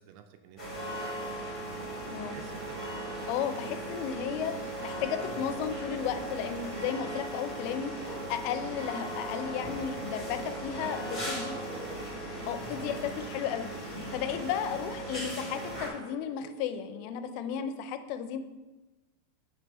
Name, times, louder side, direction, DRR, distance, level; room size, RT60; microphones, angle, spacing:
voice 1, 0.0-1.5 2.3-2.9 10.8-12.0, right 8 dB, 85° right, 6 dB, 2.6 m, -50 dB
sound 1, 0.6-15.9, right 1 dB, 10° left, 1.1 m, -38 dB
sound 2, 1.7-17.6, left 1 dB, 70° left, 2.2 m, -51 dB
voice 2, 3.3-11.5 12.5-18.4, left 8 dB, 85° left, 9 dB, 2.8 m, -34 dB
8.7 x 3.3 x 5.2 m, 1.1 s
omnidirectional pair, 5.0 m